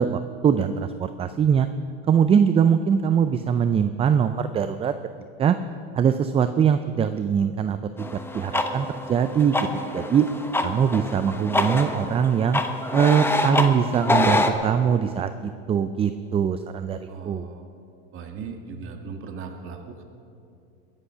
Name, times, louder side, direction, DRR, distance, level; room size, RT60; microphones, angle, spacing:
voice 1, 0.0-1.7 2.1-4.9 5.4-5.6 5.9-8.1 8.3-9.7 9.9-10.3 10.6-12.6 12.9-17.5, right 7 dB, 20° right, 11 dB, 0.4 m, -22 dB
sound 1, 8.0-14.5, left 2 dB, 5° left, 1.0 m, -26 dB
voice 2, 14.0-14.8 15.2-15.3 17.1-17.6 18.1-20.0, right 5 dB, 45° right, 4 dB, 1.8 m, -38 dB
21.5 x 8.1 x 5.7 m, 2.6 s
supercardioid pair, 110°, 31 cm